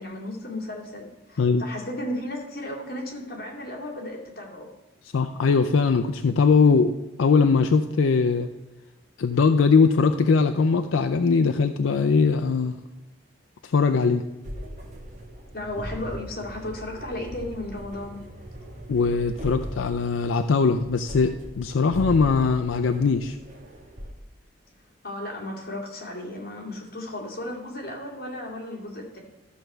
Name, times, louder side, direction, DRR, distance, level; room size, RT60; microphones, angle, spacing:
voice 1, 0.0-4.7 15.5-18.2 25.0-29.2, left 1 dB, 50° left, -2 dB, 2.4 m, -34 dB
voice 2, 5.1-8.5 9.2-12.8 13.6-14.2 18.9-23.4, left 4 dB, 80° left, 7 dB, 0.4 m, -21 dB
sound 1, 14.4-24.1, equal, 35° right, 1.4 m, -39 dB
13.0 x 4.6 x 6.7 m, 1.0 s
head